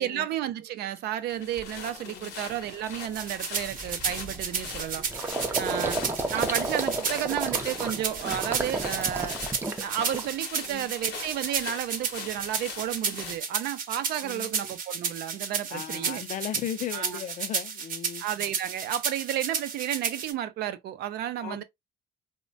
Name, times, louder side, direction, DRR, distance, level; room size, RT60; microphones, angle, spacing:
voice 1, 0.0-5.0 5.6-6.0 6.3-9.4 9.8-16.2 16.9-17.2 18.2-21.6, right 11 dB, 70° right, 0.5 m, -32 dB
Gurgling, 1.0-1.1 1.6-1.8 2.2-2.4 2.6-10.7 11.0-11.6, right 2 dB, 15° right, 0.5 m, -33 dB
sound 1, 1.3-13.4, left 7 dB, 80° left, 0.8 m, -42 dB
sound 2, 3.1-20.3, right 6 dB, 55° right, 0.8 m, -33 dB
voice 2, 5.7-6.2 10.7-10.9 14.2-14.5 15.7-18.3 21.4-21.6, left 10 dB, 50° left, 0.4 m, -37 dB
3.1 x 2.2 x 2.5 m
cardioid pair, 110°, 17 cm